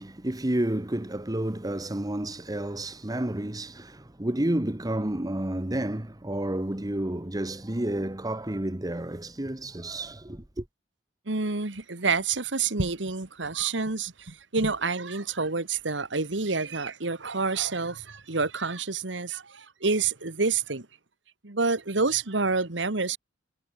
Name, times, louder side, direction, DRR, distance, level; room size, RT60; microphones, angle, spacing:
voice 1, 0.0-10.6, right 1 dB, 20° right, 1.2 m, -30 dB
voice 2, 11.3-20.9 21.4-23.2, right 4 dB, 75° right, 1.8 m, -28 dB
head